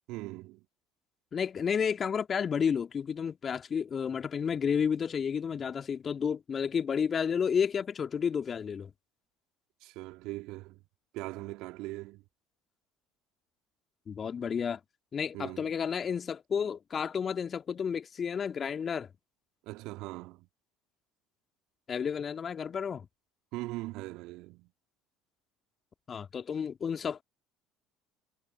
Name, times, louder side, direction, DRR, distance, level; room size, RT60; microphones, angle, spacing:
voice 1, 0.1-0.7 9.8-10.8 11.1-12.2 15.3-15.7 19.6-20.5 23.5-24.7, right 20 dB, 60° right, 2.5 m, -40 dB
voice 2, 1.3-8.9 14.1-14.8 15.1-19.1 21.9-23.1 26.1-27.2, left 7 dB, 35° left, 2.3 m, -31 dB
figure-of-eight pair, 60°, 0 cm